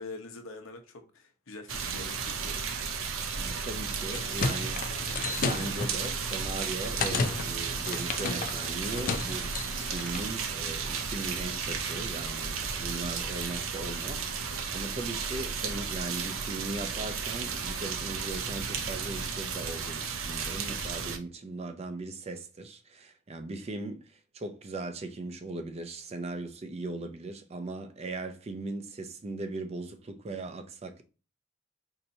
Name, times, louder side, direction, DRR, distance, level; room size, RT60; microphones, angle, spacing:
voice 1, 0.0-3.1, left 3 dB, 85° left, 0.8 m, -45 dB
sound 1, 1.7-21.2, right 5 dB, 80° right, 0.5 m, -34 dB
voice 2, 3.4-5.1 5.3-31.0, right 2 dB, 30° right, 0.4 m, -39 dB
sound 2, 3.9-10.3, left 4 dB, 40° left, 0.4 m, -34 dB
4.2 x 2.7 x 2.7 m
head